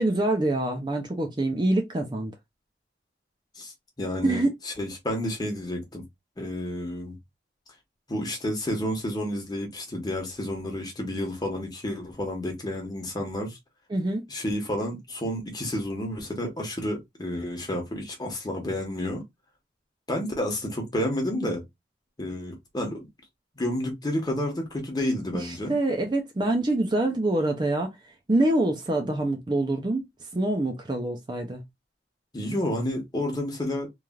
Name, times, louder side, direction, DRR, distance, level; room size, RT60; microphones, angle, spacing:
voice 1, 0.0-2.3 4.2-4.5 13.9-14.3 25.3-28.0 28.3-30.0 30.3-31.6, right 2 dB, 25° right, 0.5 m, -25 dB
voice 2, 3.6-6.0 6.4-7.2 8.1-13.6 14.3-19.2 20.1-21.6 22.2-23.1 23.6-25.7 32.3-33.9, left 1 dB, 20° left, 1.0 m, -30 dB
3.1 x 2.4 x 2.3 m
head